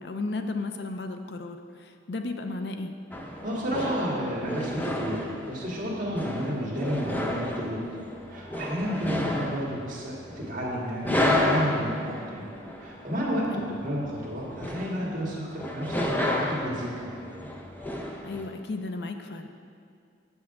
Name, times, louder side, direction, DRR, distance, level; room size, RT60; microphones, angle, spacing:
voice 1, 0.0-2.9 13.5-13.8 18.2-19.5, left 3 dB, 65° left, 6 dB, 0.5 m, -34 dB
sound 1, 3.1-18.5, left 1 dB, 10° left, 0.6 m, -32 dB
voice 2, 3.4-7.8 8.3-12.5 12.8-17.2, equal, 45° right, -4 dB, 1.8 m, -31 dB
7.5 x 7.2 x 4.7 m, 2.4 s
head